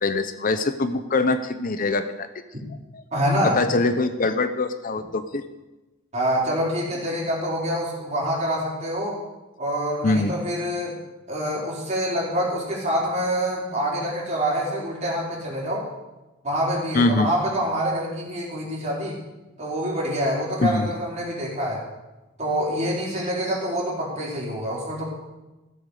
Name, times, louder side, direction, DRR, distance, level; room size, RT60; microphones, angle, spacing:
voice 1, 0.0-2.3 2.9-3.0 3.4-5.4 10.0-10.3 16.9-17.3 20.6-20.9, left 3 dB, 45° left, 10 dB, 0.7 m, -23 dB
voice 2, 3.1-3.6 6.1-9.2 9.6-10.9 11.3-15.9 16.4-19.2 19.6-21.8 22.4-25.1, equal, 35° right, -4 dB, 4.7 m, -26 dB
16.0 x 8.3 x 6.6 m, 1.1 s
head